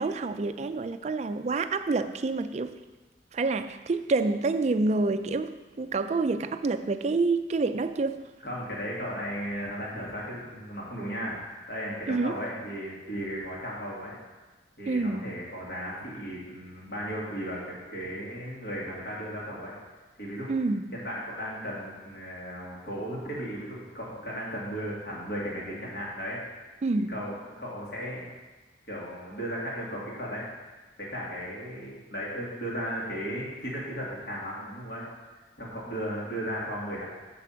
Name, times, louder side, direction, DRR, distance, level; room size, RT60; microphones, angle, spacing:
voice 1, 0.0-2.7 3.3-8.2 12.1-12.4 14.9-15.2 20.5-20.9 26.8-27.1, right 3 dB, 40° right, 10 dB, 0.4 m, -27 dB
voice 2, 8.4-14.2 14.8-19.7 20.2-20.5 20.9-26.4 27.1-28.3 28.9-30.4 31.0-35.1 35.6-37.0, equal, 60° left, -6 dB, 2.5 m, -35 dB
6.9 x 6.0 x 5.7 m, 1.2 s
head